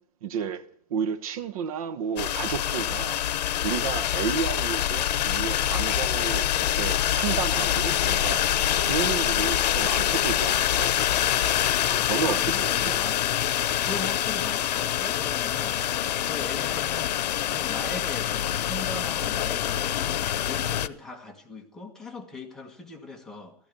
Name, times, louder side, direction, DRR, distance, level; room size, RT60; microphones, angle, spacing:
voice 1, 0.2-3.2 3.6-8.5 8.8-11.0 12.1-13.0, right 7 dB, 55° right, 1.1 m, -32 dB
sound 1, 2.2-20.9, left 12 dB, 75° left, 0.9 m, -25 dB
voice 2, 11.8-13.3 13.8-15.8 16.2-23.5, left 2 dB, 5° left, 1.4 m, -40 dB
15.5 x 13.5 x 6.8 m
supercardioid pair, 170°, 21 cm